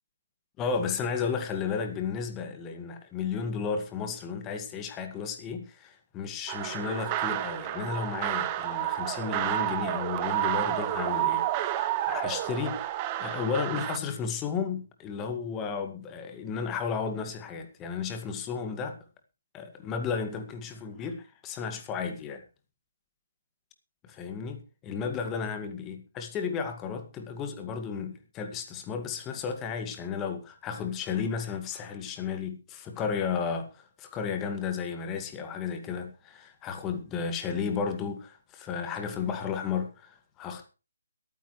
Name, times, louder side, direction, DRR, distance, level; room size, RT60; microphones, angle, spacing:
voice 1, 0.6-12.9 13.2-19.0 19.5-22.4 24.0-40.7, left 6 dB, 15° left, 1.9 m, -33 dB
sound 1, 6.5-14.0, right 13 dB, 25° right, 0.9 m, -30 dB
22.5 x 9.4 x 3.2 m
figure-of-eight pair, 140°, 0 cm